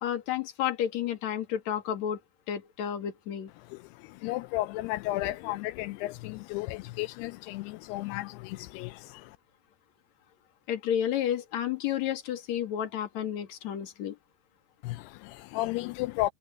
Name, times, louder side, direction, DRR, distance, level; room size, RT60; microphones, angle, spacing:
voice 1, 0.0-2.2 2.5-3.5 10.7-14.2, left 10 dB, 50° left, 2.6 m, -31 dB
voice 2, 3.7-9.3 14.8-16.3, left 18 dB, 85° left, 2.3 m, -34 dB
omnidirectional pair, 5.2 m